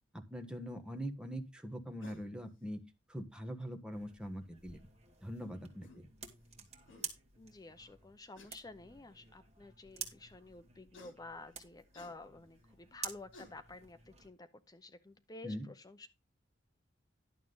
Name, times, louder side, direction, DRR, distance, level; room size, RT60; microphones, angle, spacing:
voice 1, 0.1-2.8 3.1-4.8 5.2-6.1 15.4-15.7, equal, 5° right, 5 dB, 1.4 m, -42 dB
sound 1, 2.0-2.3 3.8-3.9 5.4-5.5 5.8-6.0 6.6-6.7 6.9-7.1 8.3-8.5 9.4-9.5 10.9-11.2 11.9-12.2 12.9-13.0 13.3-13.5, left 2 dB, 75° left, 3.0 m, -56 dB
sound 2, 3.9-14.3, right 7 dB, 35° right, 2.4 m, -50 dB
voice 2, 7.4-16.1, left 2 dB, 20° left, 11 dB, 0.6 m, -51 dB
11.5 x 7.2 x 3.9 m, 0.26 s
head